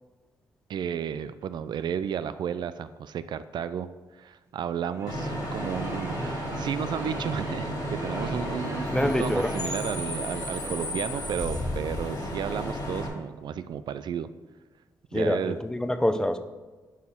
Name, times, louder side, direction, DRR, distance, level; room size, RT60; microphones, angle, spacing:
voice 1, 0.7-3.9 4.2-14.3 15.1-15.6, right 8 dB, 70° right, 13 dB, 0.4 m, -33 dB
sound 1, 4.8-12.0, right 3 dB, 35° right, 0.9 m, -42 dB
Bus / Idling / Screech, 5.1-13.1, equal, 60° left, 2.3 m, -32 dB
voice 2, 8.9-9.5 15.1-16.4, left 1 dB, 10° left, 10 dB, 0.6 m, -26 dB
11.0 x 4.4 x 3.6 m, 1.3 s
cardioid pair, 80°, 8 cm